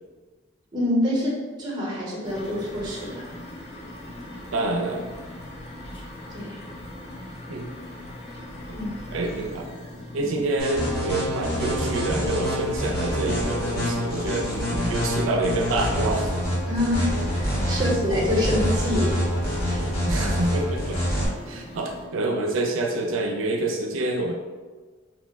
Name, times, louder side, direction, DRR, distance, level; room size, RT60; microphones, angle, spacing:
voice 1, 0.7-3.2 6.3-6.7 8.8-8.9 10.2-10.3 16.7-19.2 19.7-19.9 21.5-21.6, left 1 dB, 20° right, -4 dB, 0.7 m, -26 dB
sound 1, 2.2-22.1, left 1 dB, 30° left, 0.5 m, -40 dB
voice 2, 4.5-5.0 7.5-7.7 8.7-8.8 9.1-9.7 10.1-16.3 17.6-17.8 20.1-21.0 21.5-24.3, right 2 dB, 90° right, 2 dB, 0.4 m, -27 dB
sound 2, 10.6-21.3, equal, 50° left, 1.1 m, -26 dB
2.9 x 2.0 x 3.4 m, 1.4 s
head